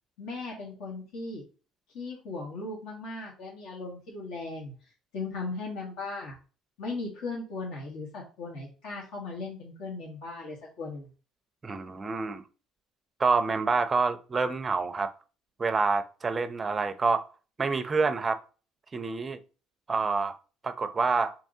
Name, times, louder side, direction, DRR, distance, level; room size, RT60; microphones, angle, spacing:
voice 1, 0.2-1.4 1.9-4.7 5.1-6.4 6.8-11.1, left 3 dB, 75° left, -1 dB, 1.4 m, -37 dB
voice 2, 11.6-12.4 13.2-15.1 15.6-17.2 17.6-18.4 18.9-19.4 19.9-20.4 20.6-21.3, right 4 dB, 25° right, 10 dB, 0.4 m, -27 dB
4.5 x 2.9 x 2.7 m, 0.35 s
cardioid pair, 115°, 0 cm